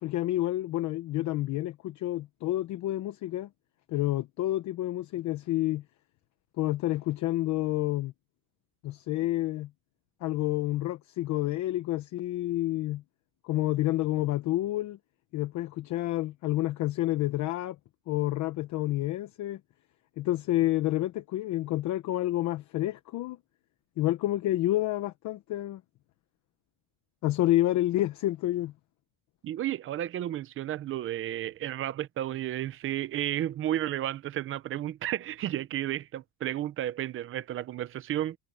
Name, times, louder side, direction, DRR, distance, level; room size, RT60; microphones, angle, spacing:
voice 1, 0.0-3.5 3.9-5.8 6.6-8.1 8.8-9.7 10.2-13.0 13.4-15.0 15.3-17.8 18.1-19.6 20.2-23.4 24.0-25.8 27.2-28.7, left 15 dB, 35° left, 1.0 m, -29 dB
voice 2, 29.4-38.4, right 12 dB, 25° right, 0.7 m, -32 dB
cardioid pair, 160°, 49 cm